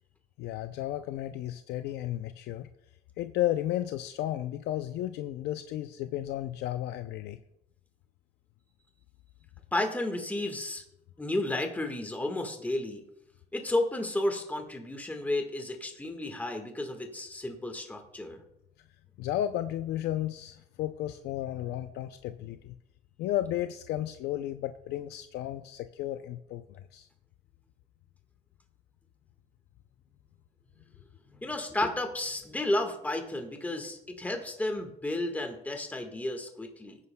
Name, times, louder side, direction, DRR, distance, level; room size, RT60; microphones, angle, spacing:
voice 1, 0.4-2.7 3.2-7.4 19.2-22.7 23.2-27.1, left 13 dB, 80° left, 9 dB, 0.5 m, -33 dB
voice 2, 9.7-10.8 11.2-13.0 13.5-18.4 31.3-37.0, left 1 dB, 10° left, 4 dB, 1.5 m, -32 dB
18.5 x 9.6 x 2.2 m, 0.81 s
cardioid pair, 110°, 17 cm